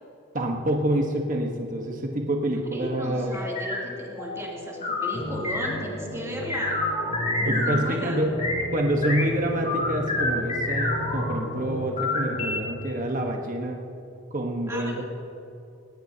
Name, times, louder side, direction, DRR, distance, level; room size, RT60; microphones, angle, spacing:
voice 1, 0.3-3.4 7.4-8.3 8.7-13.8 14.3-15.0, right 1 dB, 40° right, 1 dB, 1.2 m, -27 dB
voice 2, 2.7-6.8 7.3-8.2 14.7-15.0, equal, 15° right, -4 dB, 2.9 m, -36 dB
sound 1, 3.3-7.8 8.2-8.6 9.0-9.2 9.6-11.3 11.8-12.6, left 2 dB, 35° left, 3.7 m, -29 dB
sound 2, 5.1-12.6, left 1 dB, 50° left, 2.7 m, -33 dB
19.0 x 18.5 x 2.9 m, 2.7 s
head